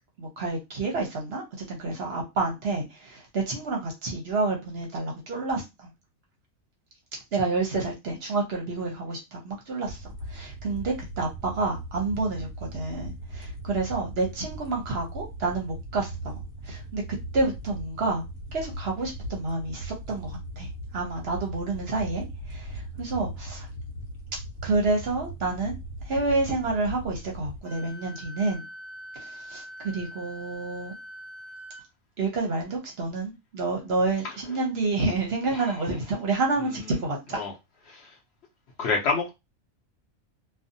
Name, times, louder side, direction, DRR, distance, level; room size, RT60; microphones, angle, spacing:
voice 1, 0.2-5.9 7.3-16.4 16.6-17.0 17.3-18.3 18.5-23.7 24.6-25.7 26.0-28.7 29.1-31.0 32.2-37.4, right 3 dB, 55° right, 0.8 m, -29 dB
sound 1, 9.8-27.6, right 1 dB, 85° left, 1.1 m, -39 dB
Wind instrument woodwind instrument, 27.6-31.8, equal, 25° left, 0.8 m, -43 dB
voice 2, 38.8-39.3, left 4 dB, 60° left, 0.8 m, -27 dB
2.6 x 2.3 x 2.6 m
omnidirectional pair, 1.4 m